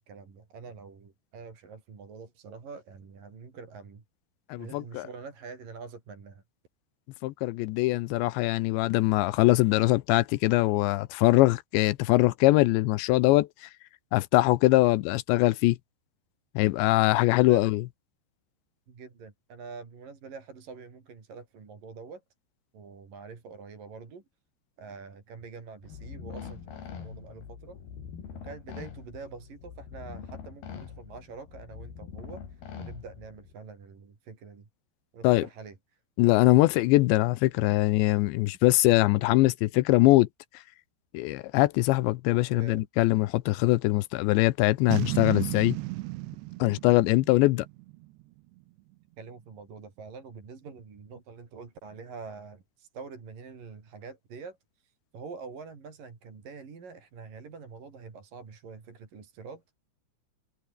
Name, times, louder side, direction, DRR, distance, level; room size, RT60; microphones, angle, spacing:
voice 1, 0.0-4.0 4.6-6.4 17.5-17.7 18.9-22.2 22.7-24.2 24.8-27.8 28.3-34.7 35.1-36.0 42.5-42.9 49.2-59.7, right 5 dB, 50° right, 6.1 m, -45 dB
voice 2, 4.5-5.1 7.2-13.7 14.1-15.8 16.6-17.8 35.2-35.4 36.2-40.3 41.1-45.8 46.6-47.7, left 19 dB, 85° left, 3.0 m, -22 dB
sound 1, 25.8-33.5, left 7 dB, 60° left, 5.4 m, -43 dB
Boom, 44.9-48.2, right 20 dB, 80° right, 2.8 m, -34 dB
omnidirectional pair, 5.2 m